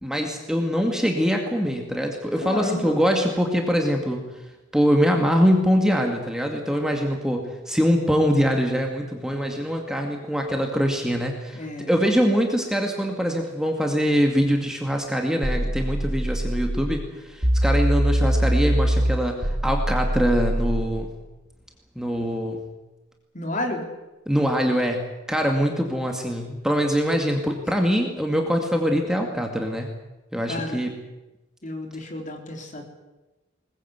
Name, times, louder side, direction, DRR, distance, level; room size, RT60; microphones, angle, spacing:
voice 1, 0.0-4.2 4.7-21.1 22.0-22.6 24.3-29.9 30.3-31.0, equal, 5° right, 2 dB, 2.1 m, -23 dB
voice 2, 2.4-3.0 11.5-11.9 23.3-23.8 30.5-30.8 31.6-32.8, left 1 dB, 40° left, 2 dB, 3.8 m, -31 dB
sound 1, 15.4-16.9 17.4-20.9, right 1 dB, 35° right, 3.8 m, -23 dB
21.5 x 20.5 x 8.1 m, 1.1 s
head